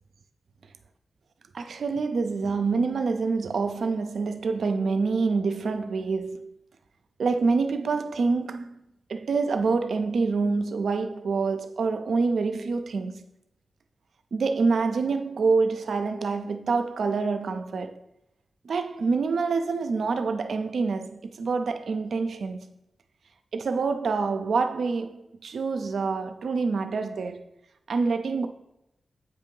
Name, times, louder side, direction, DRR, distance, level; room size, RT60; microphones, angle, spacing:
voice 1, 1.5-6.5 7.2-8.8 9.1-13.2 14.3-18.0 18.6-22.7 23.5-27.4 27.9-28.5, right 4 dB, 80° right, 0.4 m, -26 dB
8.1 x 2.7 x 5.3 m
cardioid pair, 55°, 0 cm